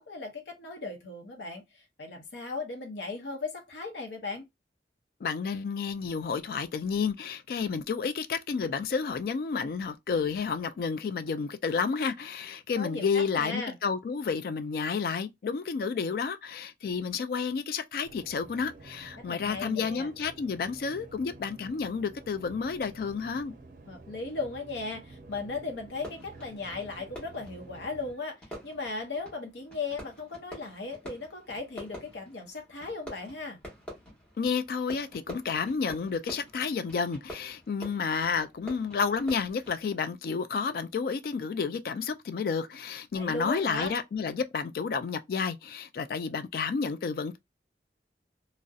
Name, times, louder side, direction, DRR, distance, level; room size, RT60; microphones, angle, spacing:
voice 1, 0.0-1.6 2.0-4.4 12.8-13.8 19.3-20.1 23.9-33.6 43.1-43.9, left 3 dB, 85° left, 0.7 m, -37 dB
voice 2, 5.2-23.5 34.4-47.4, left 5 dB, 55° left, 0.3 m, -31 dB
sound 1, 18.0-28.1, right 2 dB, 50° right, 0.5 m, -50 dB
Fireworks, 25.9-40.1, equal, 5° left, 1.0 m, -48 dB
2.6 x 2.0 x 2.3 m
head